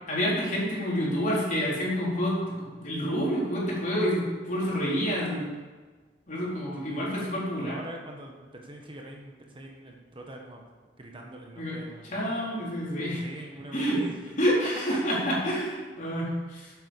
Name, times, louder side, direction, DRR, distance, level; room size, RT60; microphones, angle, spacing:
voice 1, 0.1-5.5 6.3-7.7 11.6-11.8 12.1-13.2 13.7-14.0 14.4-16.7, equal, 50° left, -6 dB, 4.1 m, -28 dB
voice 2, 6.8-10.7 11.0-12.5 13.2-14.2 14.9-15.4, right 1 dB, 30° right, 1 dB, 1.4 m, -43 dB
8.8 x 8.2 x 7.2 m, 1.4 s
head